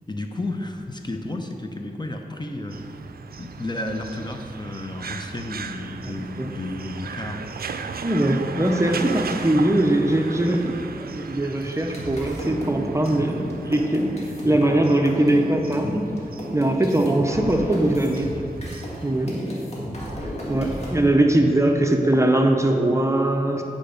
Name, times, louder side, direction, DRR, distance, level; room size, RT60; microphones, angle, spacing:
voice 1, 0.1-2.8 3.4-7.4, left 2 dB, 30° left, 3 dB, 0.6 m, -32 dB
sound 1, 2.7-19.4, right 5 dB, 75° right, 0.4 m, -37 dB
voice 2, 6.0-6.5 8.0-10.7 11.0-14.1 14.4-16.1 16.5-18.3 19.0-19.6 20.5-23.6, right 1 dB, 20° right, 3 dB, 0.6 m, -21 dB
sound 2, 11.5-19.0 19.3-20.9, equal, 45° left, 1.9 m, -33 dB
8.9 x 5.1 x 5.1 m, 2.7 s
wide cardioid pair, 80°, 16 cm